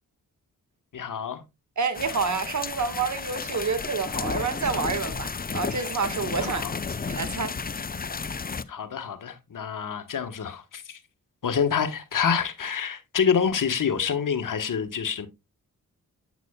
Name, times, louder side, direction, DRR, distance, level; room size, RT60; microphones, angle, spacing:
voice 1, 0.9-1.4 6.4-6.7 8.7-11.0 11.4-15.3, left 7 dB, 65° left, 1.3 m, -27 dB
voice 2, 1.8-6.6 7.1-7.6, right 5 dB, 55° right, 1.6 m, -28 dB
sound 1, 1.9-8.6, left 5 dB, 25° left, 0.6 m, -32 dB
8.2 x 8.1 x 2.3 m
cardioid pair, 45°, 35 cm